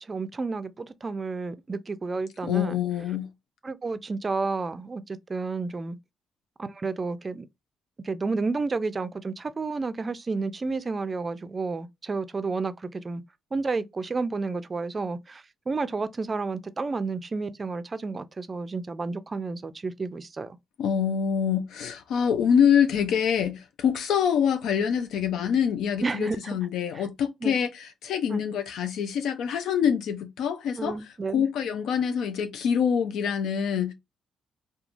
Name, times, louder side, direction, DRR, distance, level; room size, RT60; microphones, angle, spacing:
voice 1, 0.1-2.8 3.6-6.0 6.6-7.5 8.0-13.2 13.5-20.5 26.0-26.6 26.9-27.1 27.4-27.6 28.3-28.4 30.8-31.5, right 3 dB, 30° right, 0.3 m, -31 dB
voice 2, 2.5-3.3 20.8-31.0 31.3-33.9, left 8 dB, 80° left, 0.4 m, -25 dB
2.9 x 2.2 x 2.4 m
cardioid pair, 90°, 0 cm